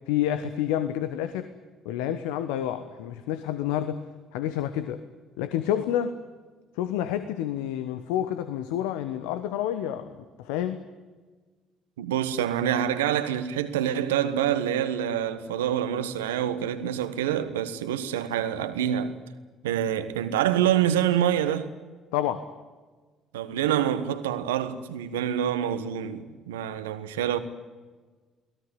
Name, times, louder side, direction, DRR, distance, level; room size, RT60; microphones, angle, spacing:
voice 1, 0.1-1.5 1.8-4.0 4.3-5.1 5.4-6.2 6.8-10.8 22.1-22.5, left 11 dB, 75° left, 1.1 m, -29 dB
voice 2, 12.0-19.2 19.6-21.7 23.3-27.4, right 10 dB, 85° right, 1.4 m, -26 dB
23.5 x 17.5 x 9.8 m
hypercardioid pair, 55°, 0 cm